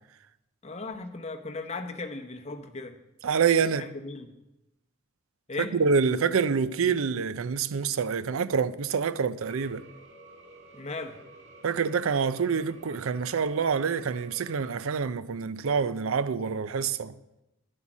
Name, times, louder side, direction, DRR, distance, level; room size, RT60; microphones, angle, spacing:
voice 1, 0.6-3.0 3.6-4.3 5.5-5.8 10.7-11.2, left 3 dB, 30° left, 0.8 m, -37 dB
voice 2, 3.2-3.8 5.7-9.8 11.6-17.1, right 6 dB, 75° right, 0.5 m, -26 dB
sound 1, 9.4-14.8, right 2 dB, 55° right, 1.7 m, -51 dB
10.0 x 8.1 x 6.0 m
head